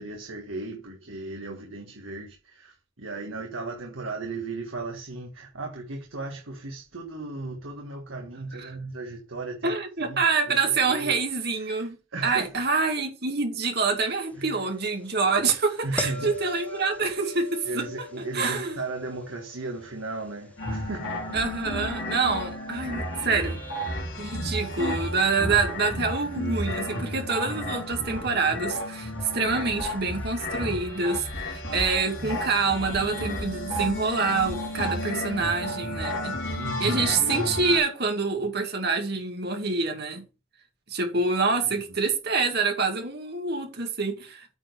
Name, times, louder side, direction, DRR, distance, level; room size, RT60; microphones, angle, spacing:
voice 1, 0.0-9.8 10.0-11.2 11.6-12.6 14.4-14.6 15.8-16.4 17.6-21.2 36.5-37.0 41.5-41.7, right 2 dB, 80° right, 1.6 m, -36 dB
voice 2, 9.6-12.0 12.2-17.9 18.3-18.8 21.3-23.6 24.2-36.4 36.8-40.3 40.9-44.5, right 4 dB, 55° right, 2.3 m, -26 dB
sound 1, 16.0-23.0 28.2-28.4, left 2 dB, 5° left, 1.2 m, -41 dB
sound 2, 20.6-37.8, equal, 75° left, 3.4 m, -32 dB
8.8 x 4.5 x 6.6 m
head